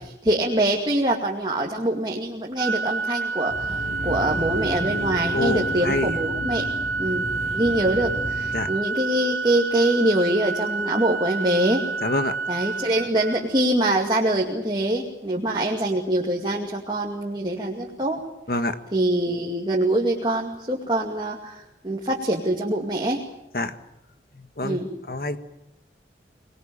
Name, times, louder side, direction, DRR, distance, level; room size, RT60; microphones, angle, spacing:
voice 1, 0.0-6.6 7.0-11.8 12.5-18.2 18.9-23.2 24.6-24.9, right 1 dB, 25° right, -1 dB, 2.4 m, -24 dB
Organ, 2.6-13.6, right 4 dB, 60° right, 1.7 m, -29 dB
sound 1, 3.5-8.7, left 1 dB, 35° left, 4.8 m, -33 dB
voice 2, 5.3-6.1 8.5-8.7 12.0-12.3 18.5-18.8 23.5-23.7 24.4-24.8 25.1-25.4, left 2 dB, 55° left, 10 dB, 1.6 m, -26 dB
26.0 x 20.5 x 8.8 m, 0.89 s
head